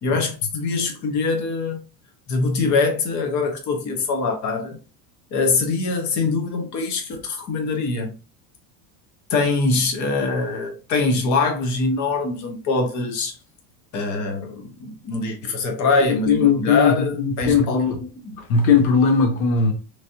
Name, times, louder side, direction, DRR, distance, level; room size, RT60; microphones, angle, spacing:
voice 1, 0.0-1.8 2.3-4.8 5.3-8.2 9.3-13.3 13.9-17.9, left 3 dB, 40° left, 1.0 m, -23 dB
voice 2, 16.0-18.1 18.4-19.7, left 5 dB, 80° left, 0.8 m, -19 dB
3.1 x 2.7 x 2.7 m
supercardioid pair, 140°, 43 cm